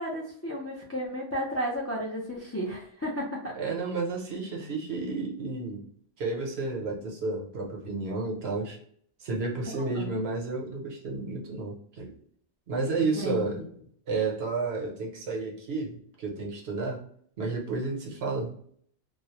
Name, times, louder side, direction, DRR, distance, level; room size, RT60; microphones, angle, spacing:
voice 1, 0.0-3.5 9.9-10.2 13.0-13.7, equal, 20° left, -3 dB, 0.4 m, -33 dB
voice 2, 3.5-5.8 6.2-8.8 9.2-12.2 12.7-13.6 14.1-17.0 17.4-18.6, right 3 dB, 70° right, -1 dB, 1.0 m, -31 dB
2.4 x 2.0 x 2.8 m, 0.62 s
omnidirectional pair, 1.1 m